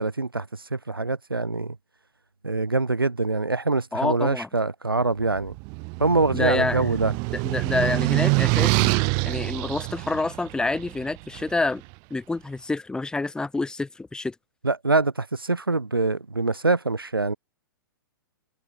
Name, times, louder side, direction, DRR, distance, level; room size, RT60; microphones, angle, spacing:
voice 1, 0.0-1.8 2.4-5.5 6.0-7.1 14.6-17.3, right 3 dB, 80° right, 5.4 m, -24 dB
voice 2, 3.9-4.5 6.3-6.9 7.3-8.9 9.2-11.8 12.1-14.3, left 3 dB, 5° left, 5.0 m, -27 dB
sound 1, 5.3-11.5, right 39 dB, 35° right, 1.2 m, -25 dB
figure-of-eight pair, 110°, 12 cm